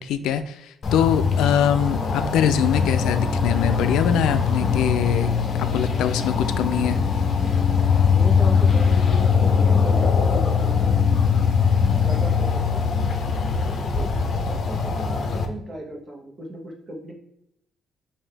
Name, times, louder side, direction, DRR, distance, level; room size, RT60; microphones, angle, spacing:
voice 1, 0.0-5.3 5.6-7.0, left 9 dB, 85° left, 11 dB, 0.3 m, -23 dB
sound 1, 0.8-15.5, left 6 dB, 50° left, 0.7 m, -21 dB
voice 2, 8.1-11.0 11.9-12.9 13.4-14.2 14.4-17.1, equal, 40° right, 1 dB, 1.1 m, -36 dB
5.4 x 2.7 x 3.3 m, 0.78 s
cardioid pair, 90°, 0 cm